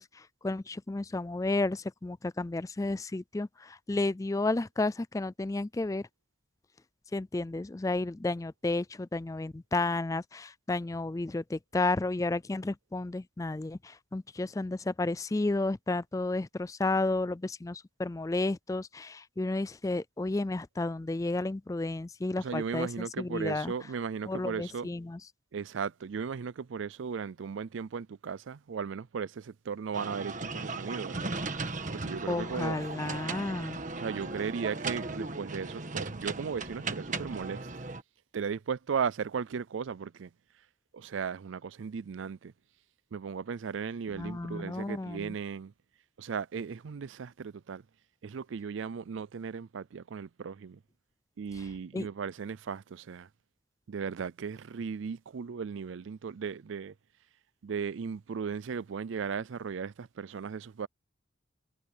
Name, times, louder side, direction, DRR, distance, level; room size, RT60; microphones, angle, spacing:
voice 1, 0.0-6.1 7.1-23.7 24.3-25.2 32.3-33.8 44.1-45.3 51.9-52.1, left 2 dB, 15° left, 0.3 m, -32 dB
voice 2, 22.4-24.9 25.5-31.3 31.9-32.8 33.9-37.7 38.3-40.3 40.9-42.5 43.1-45.7 46.2-47.8 48.2-50.8 51.4-53.3 53.9-56.9 57.6-60.9, right 6 dB, 75° right, 0.4 m, -36 dB
sound 1, 29.9-38.0, right 3 dB, 40° right, 1.5 m, -37 dB
head